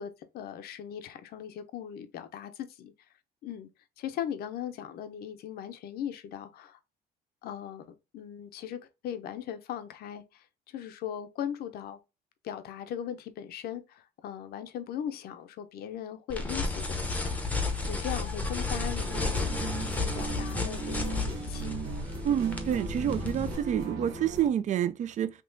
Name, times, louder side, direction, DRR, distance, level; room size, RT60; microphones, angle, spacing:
voice 1, 0.0-2.9 3.4-3.7 4.0-6.8 7.4-7.9 8.1-10.2 10.7-12.0 12.4-17.3 17.8-21.8, left 9 dB, 65° left, 0.6 m, -39 dB
sound 1, 16.3-23.6, left 3 dB, 10° left, 0.7 m, -32 dB
sound 2, 19.1-24.5, right 4 dB, 90° right, 1.4 m, -38 dB
voice 2, 22.2-25.3, right 10 dB, 45° right, 0.4 m, -28 dB
3.6 x 2.8 x 2.6 m
cardioid pair, 110°, 17 cm